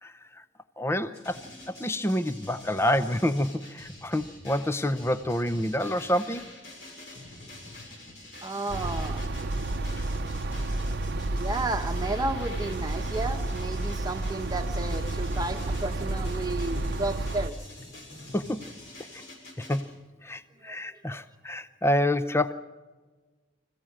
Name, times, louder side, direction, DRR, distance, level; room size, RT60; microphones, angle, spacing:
voice 1, 0.8-6.5 18.3-18.7 19.6-19.9 20.2-22.5, left 1 dB, 15° left, 12 dB, 0.6 m, -28 dB
sound 1, 1.1-19.8, left 2 dB, 65° left, 7.0 m, -46 dB
voice 2, 8.4-9.2 11.3-17.6 20.7-20.8 21.1-21.2, right 2 dB, 20° right, 5 dB, 1.3 m, -32 dB
sound 2, 8.7-17.5, right 2 dB, 55° right, 0.7 m, -31 dB
26.5 x 15.5 x 7.5 m, 1.3 s
head